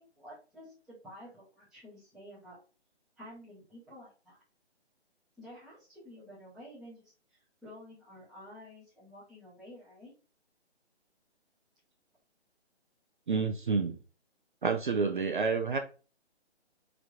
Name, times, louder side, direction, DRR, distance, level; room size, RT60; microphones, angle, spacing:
voice 1, 0.0-2.6 3.2-4.4 5.4-10.1, equal, ahead, -10 dB, 0.7 m, -51 dB
voice 2, 13.3-14.0 14.6-15.8, right 5 dB, 50° right, 5 dB, 0.4 m, -29 dB
3.3 x 2.5 x 3.7 m, 0.35 s
figure-of-eight pair, 140°, 33 cm